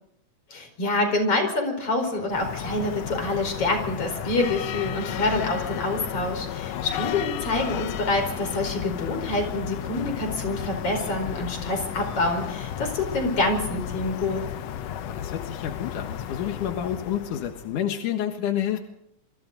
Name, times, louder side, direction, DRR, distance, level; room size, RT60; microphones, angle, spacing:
voice 1, 0.5-14.4, left 2 dB, 50° left, 5 dB, 5.7 m, -26 dB
sound 1, 2.3-17.8, left 10 dB, 65° left, 1.8 m, -33 dB
voice 2, 6.7-7.1 15.0-18.8, left 10 dB, 90° left, 5 dB, 3.0 m, -29 dB
27.5 x 24.5 x 4.0 m, 0.74 s
omnidirectional pair, 3.5 m